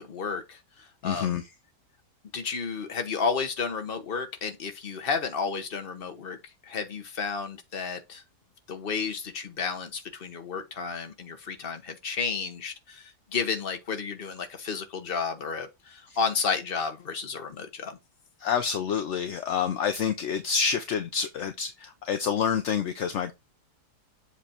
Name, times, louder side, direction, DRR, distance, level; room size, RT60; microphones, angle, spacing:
voice 1, 0.0-1.4 2.3-6.4 6.6-8.2 8.7-18.0, left 5 dB, 40° left, 1.1 m, -32 dB
voice 2, 1.0-1.5 18.4-23.3, left 7 dB, 60° left, 0.8 m, -28 dB
7.4 x 3.3 x 4.3 m
omnidirectional pair, 1.8 m